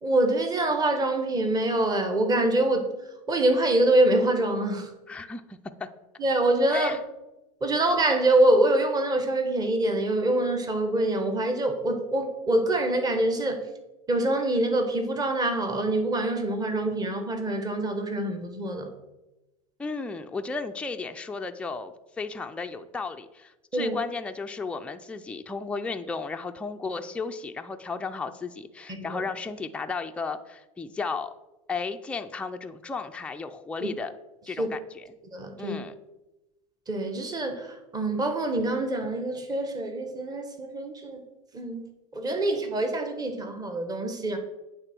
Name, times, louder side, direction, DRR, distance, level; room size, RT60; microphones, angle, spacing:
voice 1, 0.0-2.9 3.3-4.9 6.2-6.9 7.6-13.6 14.1-18.9 23.7-24.0 28.9-29.2 33.8-33.9 34.6-34.7 35.3-35.8 36.9-41.2 41.5-41.9 42.1-44.4, right 1 dB, 20° right, 6 dB, 1.3 m, -25 dB
voice 2, 5.1-5.9 6.7-7.0 19.8-31.3 31.7-34.1 34.5-35.1 35.6-35.9, left 4 dB, 5° left, 5 dB, 0.4 m, -34 dB
8.8 x 3.7 x 6.0 m, 1.0 s
hypercardioid pair, 100°, 19 cm